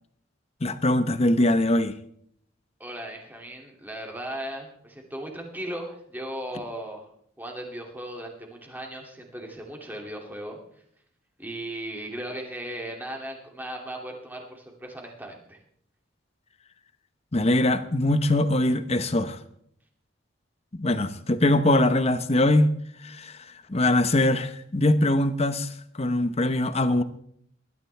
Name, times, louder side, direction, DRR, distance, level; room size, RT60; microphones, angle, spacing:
voice 1, 0.6-1.9 17.3-19.4 20.7-22.7 23.0-23.3 23.7-25.7 26.0-27.0, left 1 dB, 30° left, 0.9 m, -22 dB
voice 2, 2.8-7.1 7.4-10.6 11.4-15.6, right 1 dB, 10° right, 2.6 m, -37 dB
19.5 x 12.5 x 3.4 m
head